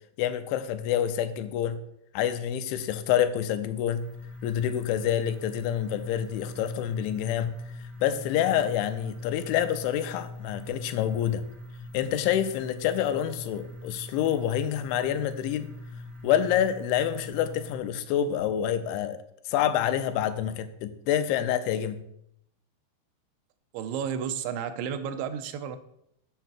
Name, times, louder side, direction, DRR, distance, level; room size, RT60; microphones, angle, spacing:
voice 1, 0.2-1.8 2.1-4.0 4.4-7.5 8.0-11.4 11.9-15.7 16.2-19.2 19.5-22.0, left 10 dB, 85° left, 9 dB, 3.0 m, -27 dB
sound 1, 4.0-17.8, left 2 dB, 55° right, 0.9 m, -42 dB
voice 2, 23.7-25.8, right 8 dB, 85° right, 9 dB, 3.0 m, -32 dB
8.1 x 6.5 x 6.0 m, 0.75 s
omnidirectional pair, 5.3 m